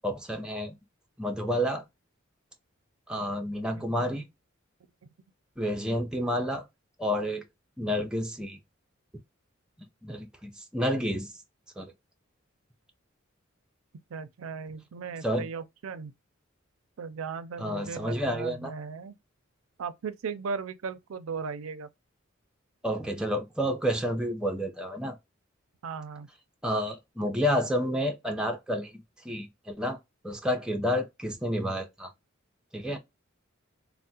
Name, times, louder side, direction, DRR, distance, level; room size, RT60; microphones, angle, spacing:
voice 1, 0.0-0.7 1.2-1.9 3.1-4.3 5.6-6.6 7.0-7.4 7.8-8.6 10.0-11.3 11.8-11.9 15.2-15.5 17.6-18.7 22.8-25.2 26.6-30.0 30.2-32.1 32.7-33.0, equal, 5° right, 0.5 m, -30 dB
voice 2, 3.7-4.2 14.1-16.1 17.0-19.2 19.8-21.9 25.8-26.3, right 5 dB, 80° right, 0.4 m, -37 dB
3.4 x 2.1 x 2.6 m
head